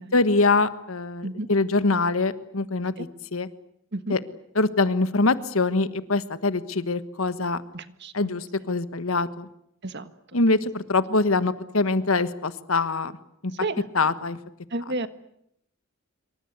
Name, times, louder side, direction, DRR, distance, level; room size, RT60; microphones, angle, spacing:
voice 1, 0.1-3.5 4.1-4.2 4.5-7.6 8.1-9.5 10.3-13.1 13.4-13.5 13.9-14.4, left 3 dB, 80° left, 13 dB, 1.5 m, -24 dB
voice 2, 7.7-8.1 9.8-10.4 13.6-13.8 14.7-15.1, right 2 dB, 55° right, 11 dB, 1.6 m, -31 dB
26.5 x 24.5 x 8.2 m, 0.76 s
head